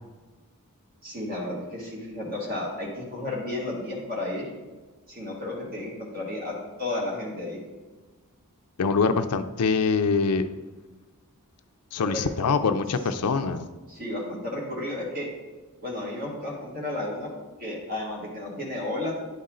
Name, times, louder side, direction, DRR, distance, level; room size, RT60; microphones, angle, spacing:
voice 1, 1.0-4.5 5.1-7.6 12.1-12.2 13.9-15.3 15.8-17.3 17.6-19.1, left 1 dB, 45° right, -4 dB, 1.9 m, -32 dB
voice 2, 8.8-10.4 11.9-13.7, left 5 dB, 90° left, 9 dB, 0.5 m, -24 dB
10.5 x 4.2 x 3.8 m, 1.3 s
head